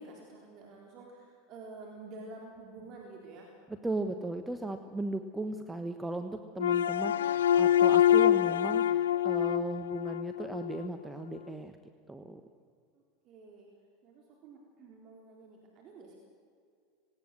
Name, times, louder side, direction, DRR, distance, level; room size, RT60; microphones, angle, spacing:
voice 1, 0.0-3.5 4.6-4.8 12.9-13.7 14.0-16.1, right 3 dB, 50° right, -1 dB, 3.9 m, -49 dB
voice 2, 3.8-11.7 12.1-12.4, right 2 dB, 10° right, 7 dB, 1.2 m, -37 dB
sound 1, 6.6-10.9, left 11 dB, 85° left, 0.5 m, -25 dB
19.0 x 18.5 x 7.7 m, 2.2 s
hypercardioid pair, 90°, 0 cm